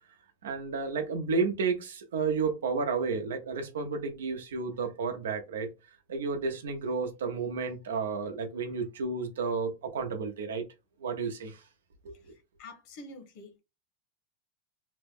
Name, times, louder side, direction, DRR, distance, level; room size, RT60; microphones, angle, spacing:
voice 1, 0.4-5.7 6.1-10.6 11.0-11.6 12.0-12.1, right 4 dB, 90° right, 0.7 m, -31 dB
voice 2, 12.6-13.6, left 2 dB, 60° left, 0.9 m, -46 dB
2.9 x 2.1 x 3.4 m
hypercardioid pair, 110°, 0 cm